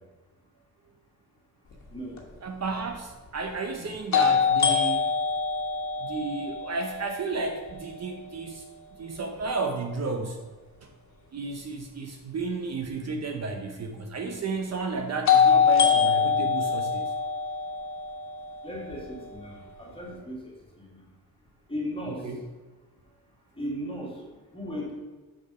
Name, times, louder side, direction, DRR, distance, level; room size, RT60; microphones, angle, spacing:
sound 1, 2.2-2.3 4.1-8.0 15.3-19.3, left 6 dB, 50° left, 1.5 m, -24 dB
voice 1, 2.4-5.1 6.0-8.6 9.0-10.4 10.8-10.9 11.3-17.1 22.1-22.4, right 3 dB, 45° right, 3 dB, 0.8 m, -32 dB
voice 2, 18.6-21.0 21.7-22.3 23.6-24.2 24.5-24.9, equal, 15° left, -2 dB, 2.1 m, -36 dB
6.7 x 6.1 x 5.5 m, 1.2 s
wide cardioid pair, 140°, 37 cm